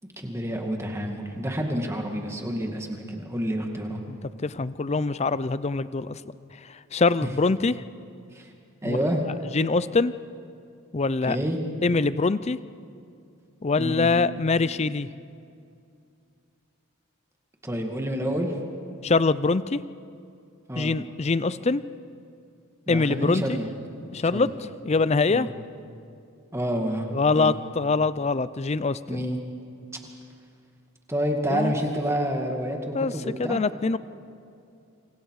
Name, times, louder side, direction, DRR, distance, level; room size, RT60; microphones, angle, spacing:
voice 1, 0.2-4.0 7.2-7.3 8.3-8.5 8.8-9.2 11.2-11.6 13.8-14.1 17.6-18.6 20.7-20.9 22.9-23.7 24.3-24.5 25.3-25.5 26.5-27.6 29.1-29.4 31.1-33.6, equal, 10° right, 2 dB, 2.1 m, -28 dB
voice 2, 4.4-6.2 6.9-7.8 8.8-9.0 9.5-10.1 10.9-11.4 11.8-12.6 13.6-15.1 19.0-19.8 20.8-21.8 22.9-23.6 24.1-24.5 24.8-25.5 27.1-29.0 31.5-31.7 32.9-33.1 33.4-34.0, left 3 dB, 30° left, 16 dB, 0.5 m, -23 dB
28.0 x 26.0 x 4.9 m, 2.5 s
head